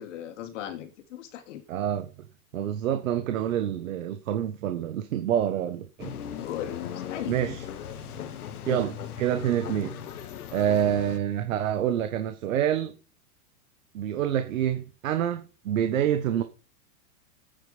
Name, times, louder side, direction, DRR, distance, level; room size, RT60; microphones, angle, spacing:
voice 1, 0.0-1.6 6.4-6.8 7.1-7.4 8.7-8.8 10.9-11.0, left 10 dB, 55° left, 2.6 m, -37 dB
voice 2, 1.7-2.1 2.5-6.1 7.3-7.6 8.7-9.9 10.5-12.9 13.9-16.4, right 10 dB, 65° right, 1.3 m, -27 dB
sound 1, 6.0-11.2, left 9 dB, 80° left, 1.6 m, -38 dB
9.5 x 9.2 x 5.0 m
supercardioid pair, 170°, 44 cm